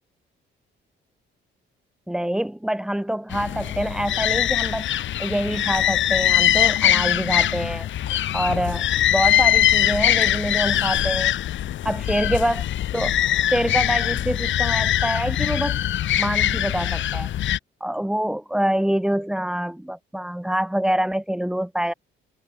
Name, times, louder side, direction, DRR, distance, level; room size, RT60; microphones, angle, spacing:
voice 1, 2.1-4.9 5.2-7.9 8.3-11.4 11.8-12.6 12.9-13.1 13.5-15.8 16.2-17.3 17.8-21.9, right 1 dB, 5° right, 6.3 m, -25 dB
sound 1, 3.3-17.6, left 12 dB, 70° left, 2.6 m, -22 dB
cardioid pair, 160°, 20 cm